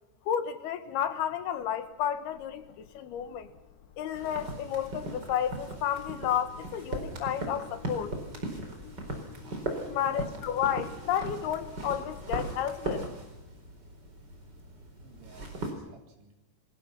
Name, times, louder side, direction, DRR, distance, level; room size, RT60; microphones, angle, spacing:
voice 1, 0.3-3.5 4.0-8.2 9.9-13.1, left 9 dB, 70° left, 3.2 m, -31 dB
sound 1, 1.2-12.8, left 8 dB, 85° left, 4.2 m, -52 dB
sound 2, 4.1-15.7, right 2 dB, 25° right, 4.7 m, -39 dB
voice 2, 9.7-10.4 15.0-16.3, right 3 dB, 70° right, 5.5 m, -51 dB
28.5 x 21.0 x 5.9 m
omnidirectional pair, 4.9 m